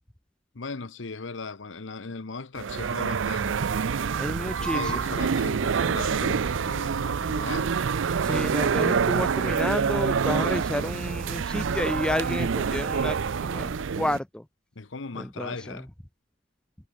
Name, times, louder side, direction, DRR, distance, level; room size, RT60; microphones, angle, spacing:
voice 1, 0.5-3.7 4.2-7.9 14.7-15.9, left 4 dB, 80° left, 1.0 m, -38 dB
sound 1, 2.6-14.2, right 6 dB, 90° right, 0.5 m, -26 dB
voice 2, 4.2-5.0 8.2-14.4 15.1-15.8, left 1 dB, 5° left, 0.4 m, -30 dB
head